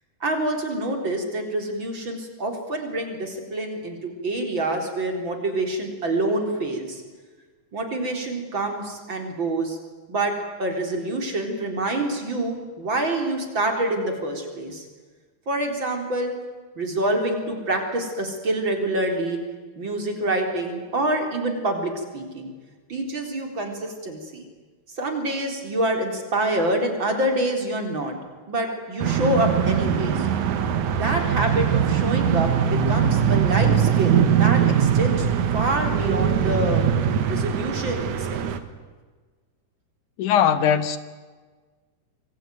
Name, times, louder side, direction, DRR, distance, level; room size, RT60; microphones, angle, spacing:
voice 1, 0.2-7.0 7.7-9.8 10.1-10.3 10.6-14.9 15.5-16.3 16.8-19.4 19.8-22.5 22.9-24.5 25.0-28.1 28.5-30.3 31.0-35.3 35.5-36.9 37.2-38.5, right 1 dB, 35° right, 4.6 m, -26 dB
sound 1, 29.0-38.6, right 8 dB, 70° right, 2.9 m, -21 dB
voice 2, 40.2-41.0, left 9 dB, 80° left, 2.7 m, -19 dB
27.0 x 22.5 x 9.4 m
omnidirectional pair, 3.5 m